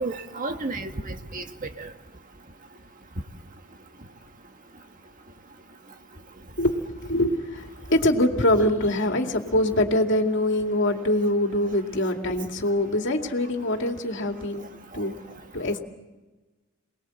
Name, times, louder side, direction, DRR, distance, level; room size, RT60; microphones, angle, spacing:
voice 1, 0.0-1.9 14.9-15.0, right 3 dB, 45° right, 6 dB, 1.6 m, -32 dB
voice 2, 6.6-14.7 14.9-15.1 15.5-15.8, left 1 dB, 65° left, 4 dB, 2.4 m, -24 dB
28.5 x 20.0 x 7.9 m, 1.2 s
head